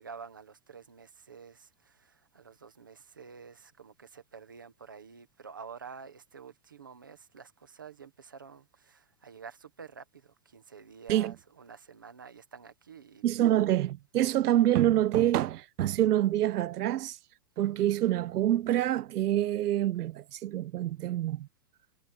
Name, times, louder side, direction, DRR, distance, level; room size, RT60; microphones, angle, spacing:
voice 1, 0.0-13.2, right 6 dB, 15° right, 0.4 m, -49 dB
voice 2, 13.2-17.2 17.6-21.5, right 13 dB, 85° right, 0.8 m, -26 dB
hypercardioid pair, 170°, 45 cm